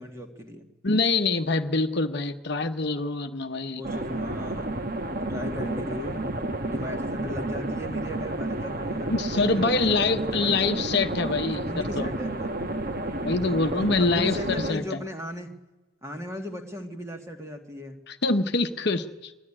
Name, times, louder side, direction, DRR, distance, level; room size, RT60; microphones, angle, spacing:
voice 1, 0.0-0.7 3.8-4.7 5.3-6.2 6.6-10.6 11.6-12.6 13.4-15.5 16.0-18.0, left 1 dB, 15° right, 4 dB, 1.7 m, -37 dB
voice 2, 0.8-3.8 9.1-12.1 13.2-15.0 18.1-19.3, left 3 dB, 55° left, 7 dB, 0.9 m, -25 dB
sound 1, 3.8-14.7, right 2 dB, 45° right, 1.3 m, -31 dB
21.5 x 14.0 x 9.9 m, 1.1 s
head